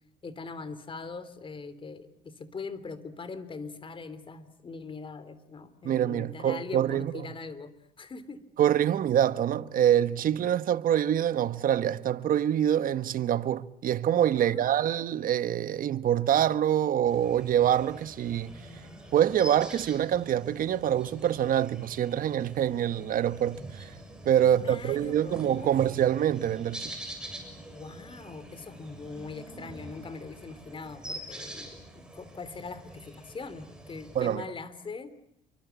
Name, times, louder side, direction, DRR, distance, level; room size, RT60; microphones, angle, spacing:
voice 1, 0.2-8.4 14.3-14.9 24.4-25.7 27.7-35.1, left 4 dB, 30° left, 3.3 m, -42 dB
voice 2, 5.8-7.1 8.6-18.6 19.1-23.9 24.2-27.0 34.1-34.4, right 10 dB, 55° right, 1.2 m, -25 dB
sound 1, 17.1-34.4, right 1 dB, 5° right, 7.2 m, -45 dB
29.0 x 24.0 x 8.2 m
cardioid pair, 110°, 17 cm